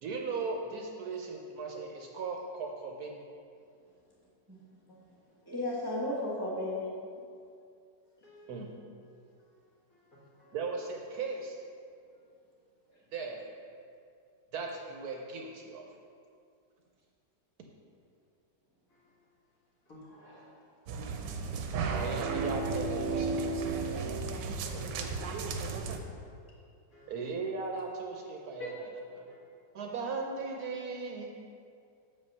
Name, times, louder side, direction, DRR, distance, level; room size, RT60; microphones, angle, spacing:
voice 1, 0.0-3.2 8.5-8.7 10.5-11.6 13.1-13.5 14.5-15.8 21.9-24.2 27.1-29.3 29.7-31.3, right 4 dB, 70° right, 1 dB, 1.1 m, -38 dB
voice 2, 5.5-6.9 20.0-20.5 25.2-25.5, left 1 dB, 15° right, -6 dB, 0.9 m, -35 dB
voice 3, 10.1-10.6 12.1-12.2 19.9-20.0 26.9-27.1 28.6-28.8 29.3-29.4, right 2 dB, 50° left, -5 dB, 2.0 m, -46 dB
sound 1, 20.9-26.0, right 4 dB, 85° right, 1.3 m, -33 dB
6.8 x 5.4 x 5.4 m, 2.4 s
omnidirectional pair, 1.9 m